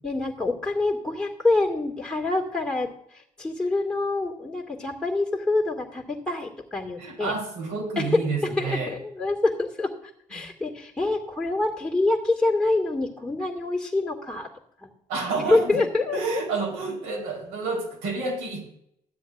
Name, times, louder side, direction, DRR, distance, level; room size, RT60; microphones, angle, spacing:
voice 1, 0.0-7.3 8.0-8.2 8.6-9.9 10.3-14.5 14.8-14.9 15.5-16.4, left 2 dB, 5° left, -3 dB, 2.2 m, -26 dB
voice 2, 7.0-8.9 10.4-10.5 15.1-15.8 16.1-18.6, right 3 dB, 75° right, -1 dB, 4.1 m, -29 dB
14.0 x 10.0 x 2.6 m, 0.72 s
hypercardioid pair, 50°, 18 cm